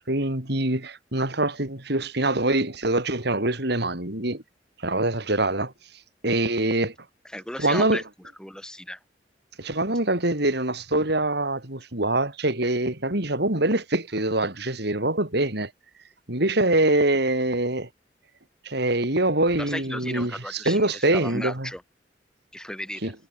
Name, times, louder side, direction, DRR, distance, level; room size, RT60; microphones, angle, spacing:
voice 1, 0.0-4.4 4.8-5.7 6.2-6.9 7.6-8.0 9.6-15.7 16.3-17.9 18.6-21.7 23.0-23.1, right 2 dB, 65° right, 4.9 m, -24 dB
voice 2, 7.3-8.0 8.4-9.0 19.6-21.8 22.5-23.1, left 1 dB, 5° left, 4.2 m, -35 dB
head